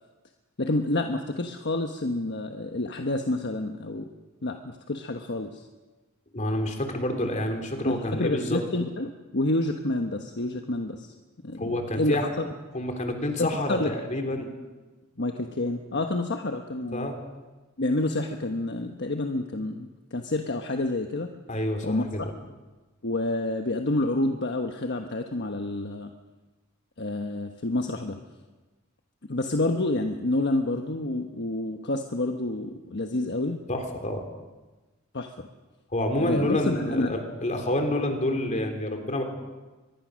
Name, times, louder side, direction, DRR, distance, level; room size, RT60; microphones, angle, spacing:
voice 1, 0.6-4.1 4.4-5.6 7.8-11.1 11.4-12.5 13.4-14.2 15.2-17.1 17.8-21.3 21.8-22.3 23.0-26.1 27.0-28.2 29.3-33.6 35.1-35.5 36.2-37.1, left 2 dB, 55° left, 4 dB, 1.2 m, -28 dB
voice 2, 6.3-8.6 11.6-12.3 12.7-14.5 16.9-17.2 21.5-22.2 33.7-34.2 35.9-39.2, left 1 dB, 35° left, 4 dB, 3.3 m, -28 dB
24.5 x 21.0 x 6.4 m, 1.2 s
head